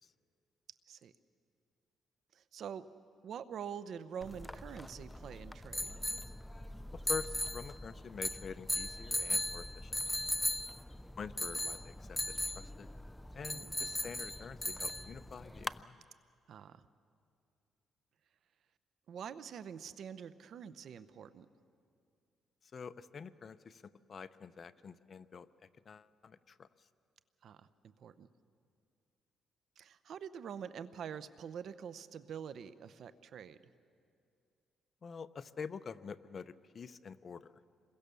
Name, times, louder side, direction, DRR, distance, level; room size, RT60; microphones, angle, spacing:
voice 1, 2.3-2.8 3.2-5.9 13.5-13.8 16.5-16.8 19.1-21.5 27.4-27.6 28.0-28.3 29.8-33.6, right 8 dB, 65° right, 14 dB, 0.9 m, -45 dB
sound 1, 4.2-15.8, left 1 dB, 5° left, 0.5 m, -38 dB
voice 2, 6.9-9.9 11.2-12.2 12.5-12.9 13.3-16.0 22.7-23.8 24.1-25.5 25.9-26.7 35.0-37.6, left 6 dB, 45° left, 14 dB, 0.7 m, -46 dB
27.5 x 22.5 x 7.0 m, 2.4 s
cardioid pair, 90°, 0 cm